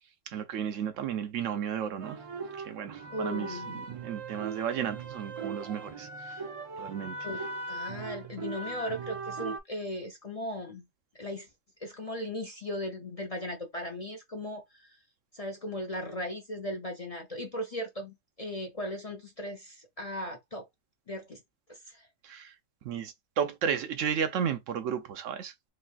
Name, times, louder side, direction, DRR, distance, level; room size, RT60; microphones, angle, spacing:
voice 1, 0.3-2.2 2.6-6.4 6.8-7.2 22.2-22.6 22.8-25.7, right 8 dB, 80° right, 1.0 m, -33 dB
sound 1, 2.0-9.6, right 4 dB, 50° right, 0.4 m, -39 dB
voice 2, 3.1-3.8 7.2-7.4 7.7-10.9 11.2-11.5 11.8-15.0 15.3-20.6 21.1-21.4 21.7-22.1, left 1 dB, 40° left, 0.5 m, -37 dB
3.3 x 3.2 x 2.4 m
omnidirectional pair, 1.3 m